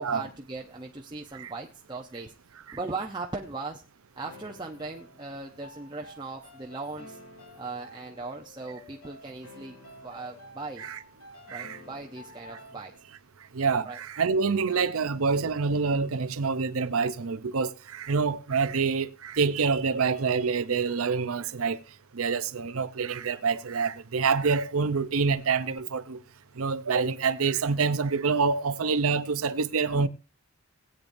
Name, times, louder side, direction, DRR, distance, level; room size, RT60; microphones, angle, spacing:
voice 1, 0.0-2.3 2.7-3.8 4.2-7.2 7.5-10.9 11.5-12.9 13.8-14.0 29.9-30.1, right 3 dB, 20° right, 0.7 m, -38 dB
sound 1, 4.2-13.1, left 1 dB, 80° left, 3.3 m, -50 dB
voice 2, 13.5-21.8 22.1-26.2 26.6-30.1, right 5 dB, 80° right, 0.7 m, -27 dB
20.5 x 8.8 x 2.6 m
head